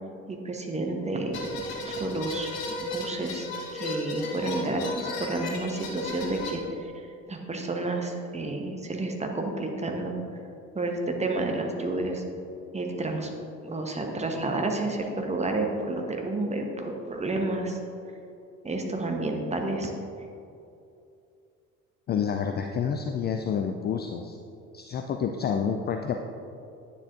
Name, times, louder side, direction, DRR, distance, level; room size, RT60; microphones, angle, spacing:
voice 1, 0.3-1.4 1.8-10.1 10.7-12.2 12.7-13.3 13.6-17.8 18.6-19.9, right 2 dB, 15° right, 2 dB, 1.0 m, -30 dB
sound 1, 1.3-6.5, left 1 dB, 60° left, 1.3 m, -34 dB
voice 2, 22.1-24.4 24.7-26.1, left 7 dB, 25° left, 5 dB, 0.4 m, -28 dB
9.8 x 6.9 x 2.6 m, 2.6 s
figure-of-eight pair, 50°, 40 cm